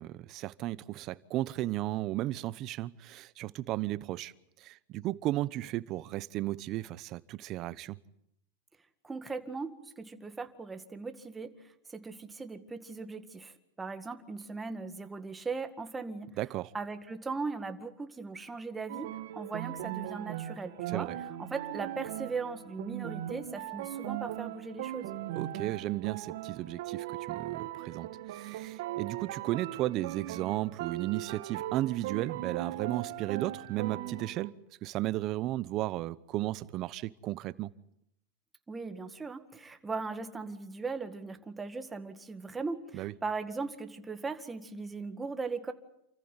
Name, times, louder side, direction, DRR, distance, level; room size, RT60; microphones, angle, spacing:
voice 1, 0.0-4.3 4.6-8.0 16.4-16.7 20.9-21.2 25.3-34.5 34.8-37.7 42.9-43.1, right 16 dB, 40° right, 0.9 m, -34 dB
voice 2, 9.0-11.5 11.9-16.3 16.7-21.1 21.4-25.1 38.7-45.7, right 4 dB, 10° right, 1.9 m, -38 dB
sound 1, 18.9-34.5, right 13 dB, 65° right, 2.0 m, -39 dB
28.5 x 14.5 x 9.8 m
supercardioid pair, 135°, 0 cm